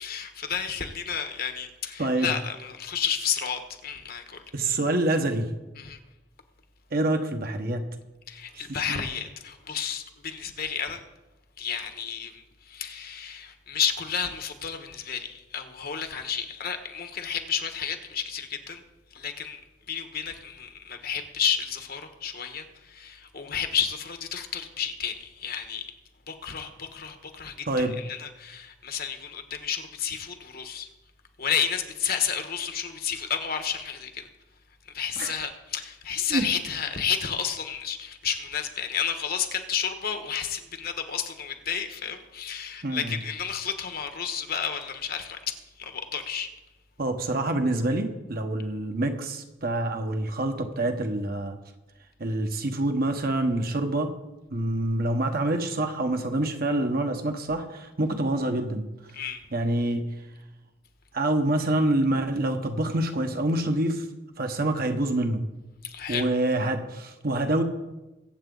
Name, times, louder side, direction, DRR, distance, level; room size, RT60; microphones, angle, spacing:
voice 1, 0.0-4.4 5.8-6.0 8.3-11.0 11.6-18.8 19.1-19.6 19.9-25.9 26.3-30.9 31.4-34.3 34.9-46.5 59.1-59.4 65.8-66.3, left 7 dB, 55° left, 1.4 m, -31 dB
voice 2, 2.0-2.3 4.5-5.5 6.9-7.9 8.6-9.0 27.7-28.0 35.2-35.3 36.3-36.5 42.8-43.2 47.0-51.6 52.2-54.1 54.5-58.9 59.5-60.1 61.1-64.0 64.4-65.4 66.1-67.6, right 1 dB, 55° right, 1.4 m, -26 dB
22.5 x 8.2 x 4.0 m
head